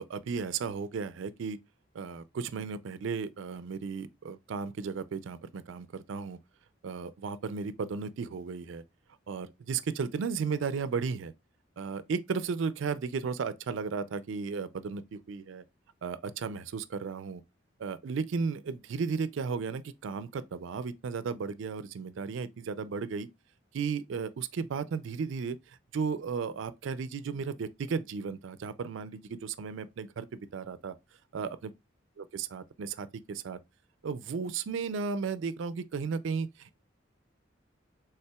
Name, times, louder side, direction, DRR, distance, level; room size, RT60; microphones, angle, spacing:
voice 1, 0.0-1.6 1.9-6.4 6.8-8.8 9.3-11.3 11.8-15.6 16.0-17.4 17.8-23.3 23.7-25.6 25.9-30.9 31.3-31.7 32.2-33.6 34.0-36.8, right 5 dB, 75° right, 0.4 m, -34 dB
5.5 x 3.5 x 2.2 m
head